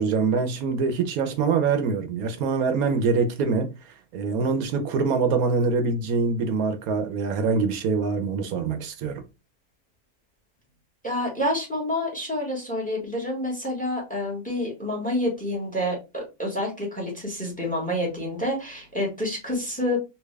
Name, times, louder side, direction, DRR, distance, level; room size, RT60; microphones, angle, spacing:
voice 1, 0.0-9.2, right 4 dB, 80° right, 1.1 m, -24 dB
voice 2, 11.0-20.0, left 1 dB, 5° left, 1.3 m, -28 dB
3.4 x 2.6 x 3.2 m
omnidirectional pair, 1.5 m